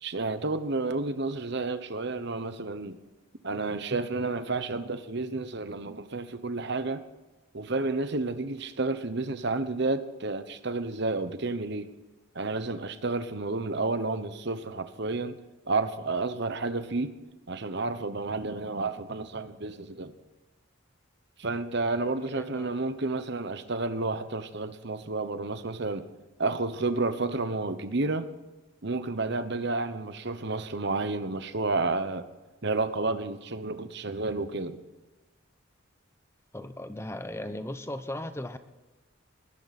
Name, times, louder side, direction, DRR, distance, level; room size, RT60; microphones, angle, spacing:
voice 1, 0.0-3.0 3.4-7.0 7.5-11.9 12.3-15.4 15.7-17.1 17.5-20.1 21.4-26.1 26.4-28.3 28.8-32.3 32.6-34.8, right 3 dB, 55° right, 11 dB, 1.1 m, -31 dB
voice 2, 22.2-22.7 36.5-38.6, left 1 dB, 10° left, 10 dB, 0.8 m, -37 dB
20.0 x 13.5 x 4.3 m, 1.2 s
head